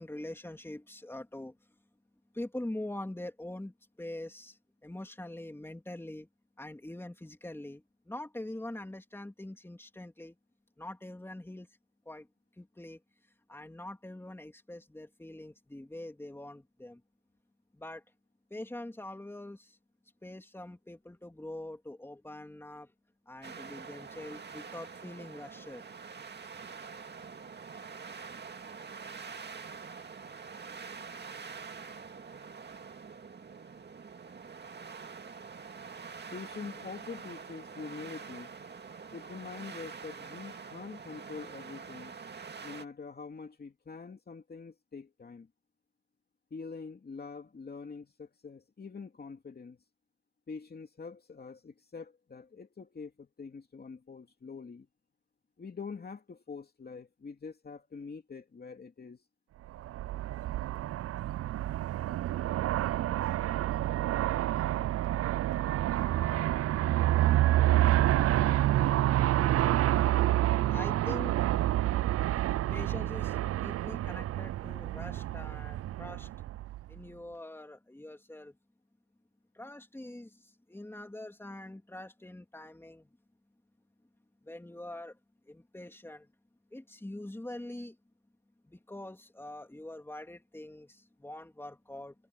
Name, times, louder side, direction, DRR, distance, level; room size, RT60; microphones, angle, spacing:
voice 1, 0.0-1.6 2.3-6.3 6.6-10.3 10.8-11.7 12.0-12.3 12.6-13.0 13.5-17.0 17.7-18.0 18.5-19.8 20.2-22.9 23.3-25.8 70.7-71.3 71.6-71.7 72.7-76.3 76.9-78.5 79.5-83.1 84.4-85.2 85.5-86.3 86.7-88.0 88.7-92.1, left 1 dB, 10° left, 3.3 m, -44 dB
sound 1, 23.4-42.8, right 5 dB, 35° right, 2.1 m, -45 dB
voice 2, 36.3-38.5 39.1-42.1 42.6-45.5 46.5-49.8 50.5-54.9 55.6-59.2, left 5 dB, 30° left, 2.8 m, -45 dB
Aircraft, 59.7-77.0, right 14 dB, 55° right, 0.4 m, -28 dB
cardioid pair, 90°, 30 cm